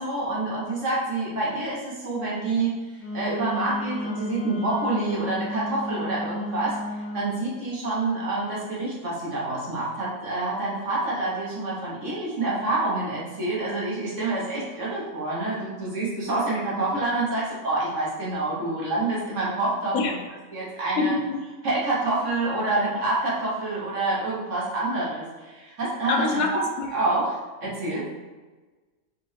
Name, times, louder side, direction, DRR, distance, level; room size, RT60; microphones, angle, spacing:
voice 1, 0.0-2.8 3.1-6.8 7.1-20.2 20.5-21.1 21.6-26.6 26.9-28.1, right 2 dB, 55° right, -6 dB, 1.5 m, -27 dB
Wind instrument woodwind instrument, 3.0-7.4, left 2 dB, 25° left, 0.3 m, -33 dB
voice 2, 21.0-21.4 26.1-26.9, left 3 dB, 75° left, 3 dB, 1.0 m, -25 dB
4.1 x 3.4 x 3.3 m, 1.3 s
omnidirectional pair, 1.5 m